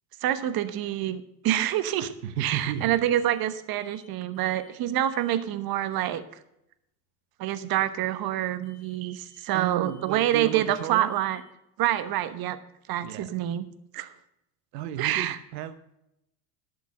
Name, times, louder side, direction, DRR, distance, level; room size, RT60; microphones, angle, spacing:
voice 1, 0.2-6.2 7.4-11.4 11.8-12.6 12.9-13.6 13.9-14.1 15.0-15.4, right 12 dB, 50° right, 12 dB, 1.2 m, -27 dB
voice 2, 2.0-3.0 9.5-11.1 13.0-13.3 14.7-15.7, right 10 dB, 80° right, 11 dB, 1.0 m, -33 dB
sound 1, 2.7-2.9 3.1-3.5 3.7-4.1 4.3-4.7 5.0-5.3 8.6-9.0 9.2-9.6 9.9-10.2 10.5-10.8 11.1-11.4, left 2 dB, 70° left, 2.6 m, -60 dB
12.0 x 6.8 x 6.4 m, 0.82 s
hypercardioid pair, 90°, 48 cm